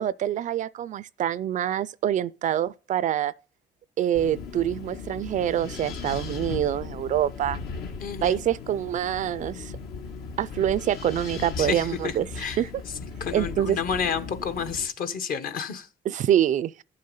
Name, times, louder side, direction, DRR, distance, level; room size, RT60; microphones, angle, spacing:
voice 1, 0.0-3.3 4.0-7.6 8.2-9.7 10.4-12.7 13.3-13.8 16.1-16.7, right 11 dB, 50° right, 0.4 m, -26 dB
Wind, 4.1-14.9, left 5 dB, 75° left, 1.5 m, -37 dB
voice 2, 8.0-8.4 11.6-12.6 13.2-15.9, left 6 dB, 55° left, 1.1 m, -30 dB
8.6 x 6.6 x 5.4 m
cardioid pair, 110°, 17 cm